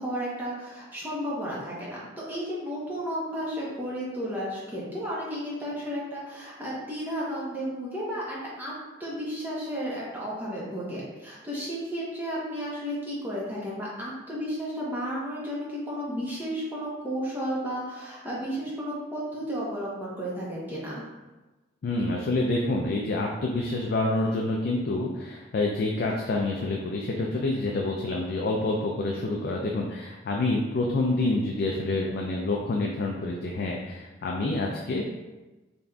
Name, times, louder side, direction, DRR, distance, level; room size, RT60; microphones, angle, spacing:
voice 1, 0.0-8.7 9.0-21.0, equal, 10° right, -6 dB, 0.8 m, -33 dB
voice 2, 21.8-35.2, left 2 dB, 50° left, -1 dB, 0.3 m, -27 dB
4.0 x 3.4 x 2.3 m, 1.1 s
head